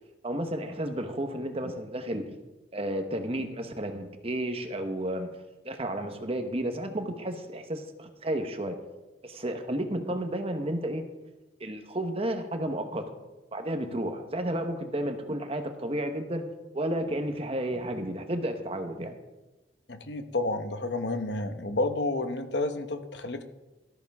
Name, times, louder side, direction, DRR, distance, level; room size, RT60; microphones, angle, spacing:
voice 1, 0.2-2.3 2.7-5.3 5.6-8.8 9.2-11.0 11.6-13.1 13.5-16.5 16.7-19.2, right 1 dB, 35° right, 7 dB, 1.1 m, -32 dB
voice 2, 19.9-23.4, left 2 dB, 75° left, 8 dB, 1.0 m, -30 dB
13.5 x 13.5 x 3.6 m, 1.1 s
head